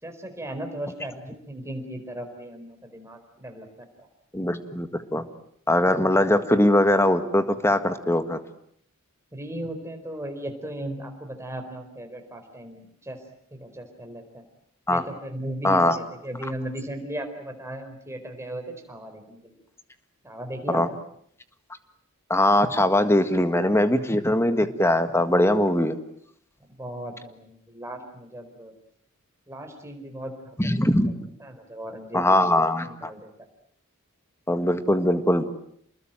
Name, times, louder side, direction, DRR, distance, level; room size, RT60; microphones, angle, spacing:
voice 1, 0.0-4.1 9.3-13.2 13.5-14.4 14.9-19.5 20.2-21.0 26.6-28.7 29.5-30.6 31.0-31.1 31.4-33.3, right 1 dB, 10° right, 4 dB, 4.5 m, -37 dB
voice 2, 4.3-5.3 5.7-8.4 14.9-15.0 15.6-16.0 20.7-20.9 22.3-25.9 30.6-31.3 32.1-33.1 34.5-35.4, left 1 dB, 10° left, 10 dB, 1.7 m, -21 dB
29.0 x 21.0 x 9.1 m, 0.70 s
head